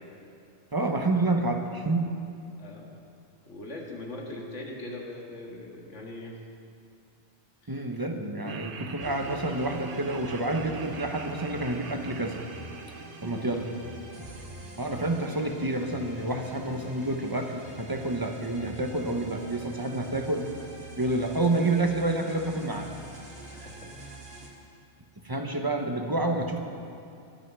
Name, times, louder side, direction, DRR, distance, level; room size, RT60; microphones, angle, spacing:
voice 1, 0.7-2.1 7.7-12.4 13.2-13.7 14.8-20.5 21.0-22.9 25.2-26.6, right 2 dB, 20° right, 3 dB, 1.0 m, -28 dB
voice 2, 2.6-2.9 3.5-6.4 7.6-7.8 13.2-13.5 23.5-23.9, left 2 dB, 85° left, -1 dB, 2.2 m, -41 dB
Laughter, 8.4-14.6, right 6 dB, 55° right, 0.8 m, -44 dB
sound 1, 9.0-24.5, right 2 dB, 70° right, 2.3 m, -45 dB
13.0 x 12.0 x 6.2 m, 2.6 s
omnidirectional pair, 1.2 m